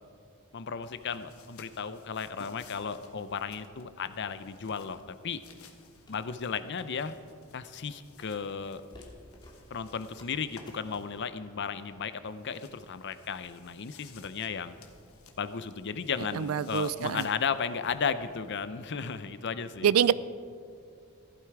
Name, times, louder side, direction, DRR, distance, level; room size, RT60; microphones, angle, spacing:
voice 1, 0.5-5.4 6.1-7.1 7.5-8.8 9.7-14.7 15.4-19.9, left 6 dB, 55° left, 13 dB, 0.6 m, -34 dB
sound 1, 0.8-11.2 12.2-19.3, left 4 dB, 75° left, 1.3 m, -57 dB
sound 2, 6.0-11.0, equal, 20° left, 2.3 m, -55 dB
voice 2, 16.3-17.3 19.8-20.2, right 8 dB, 75° right, 19 dB, 0.4 m, -25 dB
14.5 x 12.0 x 4.8 m, 2.3 s
head